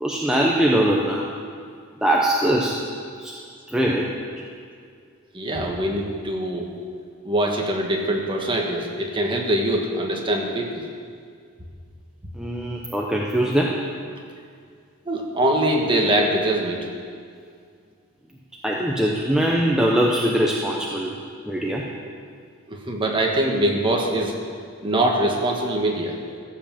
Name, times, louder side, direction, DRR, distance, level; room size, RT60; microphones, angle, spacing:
voice 1, 0.0-1.3 2.0-2.8 3.2-3.3 3.7-4.1 12.4-13.8 18.6-21.2 21.4-21.9, right 1 dB, 5° right, -3 dB, 0.7 m, -21 dB
voice 2, 5.3-6.7 7.2-10.8 15.1-16.8 22.7-24.3 24.8-26.2, right 1 dB, 20° right, 0 dB, 1.4 m, -23 dB
14.5 x 5.7 x 7.5 m, 2.2 s
head